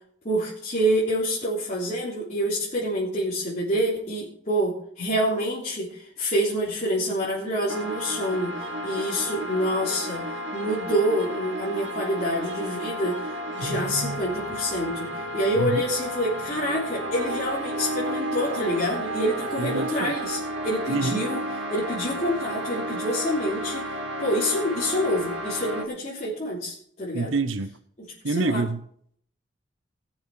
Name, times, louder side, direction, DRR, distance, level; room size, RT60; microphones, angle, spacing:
voice 1, 0.2-20.4 20.6-27.3 28.2-28.6, equal, 35° left, 3.5 m, -27 dB
sound 1, 7.7-25.8, right 1 dB, 65° right, 2.0 m, -32 dB
voice 2, 19.6-20.2 20.9-21.2 27.1-27.7 28.2-28.8, right 3 dB, 85° right, 0.9 m, -26 dB
19.5 x 7.3 x 4.9 m
head